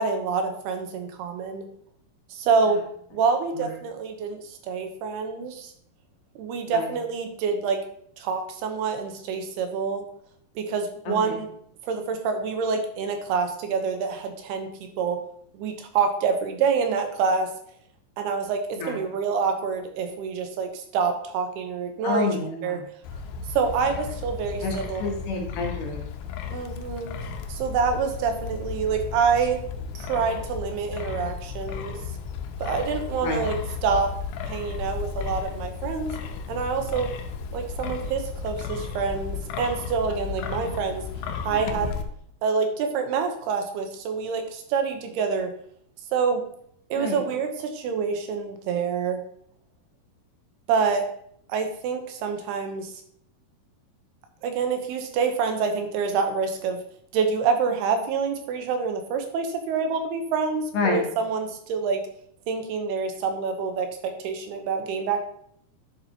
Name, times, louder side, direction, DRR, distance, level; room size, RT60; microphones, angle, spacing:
voice 1, 0.0-1.6 2.3-2.8 3.1-5.7 6.4-7.8 8.2-10.0 10.6-11.5 11.8-14.7 15.0-15.2 15.5-17.5 18.2-18.6 18.9-22.3 22.6-22.8 23.5-25.0 26.5-27.2 27.5-29.6 29.9-32.0 32.6-33.6 33.8-34.1 34.4-36.1 36.5-37.1 37.5-41.0 41.5-41.9 42.4-45.5 46.1-46.4 46.9-49.2 50.7-51.1 51.5-52.9 54.4-56.8 57.1-62.0 62.5-65.2, right 5 dB, 90° right, 6 dB, 3.0 m, -26 dB
voice 2, 11.1-11.4 18.8-19.0 22.0-22.9 24.6-26.0 33.2-33.4 41.5-41.9 47.0-47.2 60.7-61.0, left 3 dB, 65° left, 1 dB, 2.5 m, -29 dB
Wind, 23.0-42.0, left 6 dB, 80° left, 2.6 m, -34 dB
9.9 x 7.0 x 2.9 m, 0.67 s
omnidirectional pair, 4.5 m